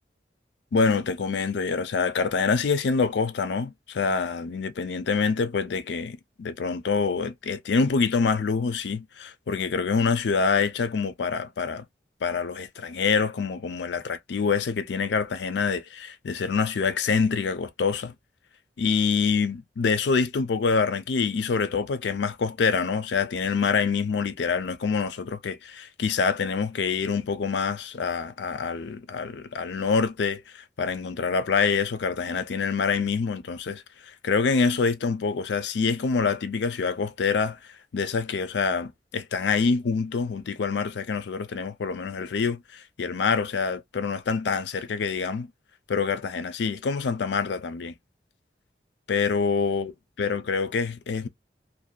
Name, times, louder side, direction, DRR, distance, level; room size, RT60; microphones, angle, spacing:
voice 1, 0.7-11.8 12.2-18.1 18.8-37.6 37.9-45.5 45.9-47.9 49.1-49.9 50.2-51.3, left 5 dB, 80° left, 0.4 m, -26 dB
2.6 x 2.1 x 2.3 m
head